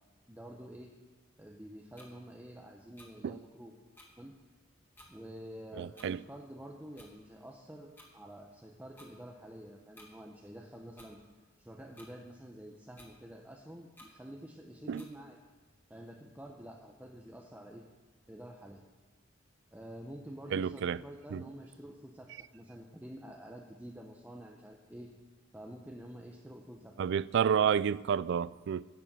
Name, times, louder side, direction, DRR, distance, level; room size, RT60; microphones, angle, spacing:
voice 1, 0.3-0.9 1.4-3.7 4.2-4.3 5.1-11.2 11.6-15.4 15.9-17.8 18.3-18.8 19.7-25.1 25.5-27.0, equal, 10° right, 0.8 m, -48 dB
sound 1, 1.9-2.1 2.9-3.1 4.0-4.1 4.9-5.1 5.9-6.1 6.9-7.1 8.0-8.1 8.9-9.1 9.9-10.1 11.0-11.1 11.9-12.1 13.0-13.1 13.9-14.1 15.0-15.1, left 1 dB, 10° left, 1.9 m, -55 dB
voice 2, 5.8-6.2 14.9-15.0 20.5-21.0 21.3-21.4 27.0-28.9, right 7 dB, 60° right, 0.3 m, -30 dB
11.0 x 8.5 x 7.4 m
head